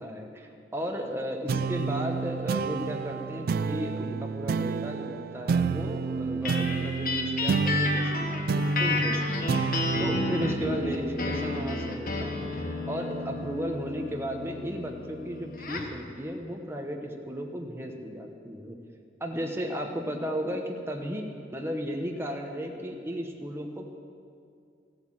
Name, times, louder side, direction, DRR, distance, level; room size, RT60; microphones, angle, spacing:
voice 1, 0.0-9.6 10.0-18.8 19.2-23.9, equal, 15° right, 2 dB, 1.1 m, -35 dB
sound 1, 1.5-12.3, right 4 dB, 55° right, 0.3 m, -30 dB
sound 2, 6.5-16.0, left 2 dB, 50° left, 1.2 m, -32 dB
15.0 x 8.0 x 7.6 m, 2.4 s
head